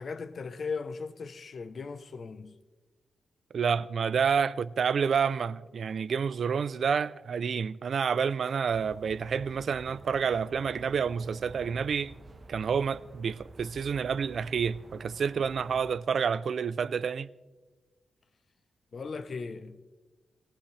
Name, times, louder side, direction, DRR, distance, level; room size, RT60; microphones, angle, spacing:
voice 1, 0.0-2.6 18.9-19.8, left 4 dB, 55° left, 0.9 m, -38 dB
voice 2, 3.5-12.1 12.5-17.3, right 6 dB, 65° right, 0.4 m, -29 dB
sound 1, 8.7-15.9, right 2 dB, 45° right, 1.2 m, -50 dB
19.0 x 18.5 x 3.3 m
cardioid pair, 90°, 0 cm